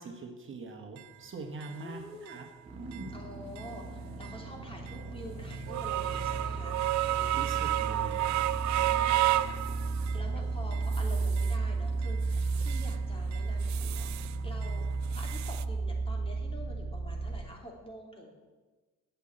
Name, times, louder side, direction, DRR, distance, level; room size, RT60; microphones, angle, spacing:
voice 1, 0.0-2.4 2.8-3.3 7.0-8.5 8.9-9.1, right 3 dB, 40° right, 2 dB, 1.5 m, -43 dB
sound 1, 1.0-1.1 1.6-1.7 2.3-2.4 2.9-3.1 3.6-3.7 4.2-4.4 4.9-5.0 5.5-10.3 10.7-11.6 12.0-12.9 13.3-14.4 14.6-15.6, right 15 dB, 70° right, 0.5 m, -32 dB
voice 2, 1.7-2.4 3.1-6.8 8.7-18.3, left 1 dB, 20° left, 0 dB, 3.0 m, -47 dB
sound 2, 2.6-17.4, right 3 dB, 20° right, 2.1 m, -34 dB
8.3 x 8.2 x 8.7 m, 1.3 s
cardioid pair, 90°, 30 cm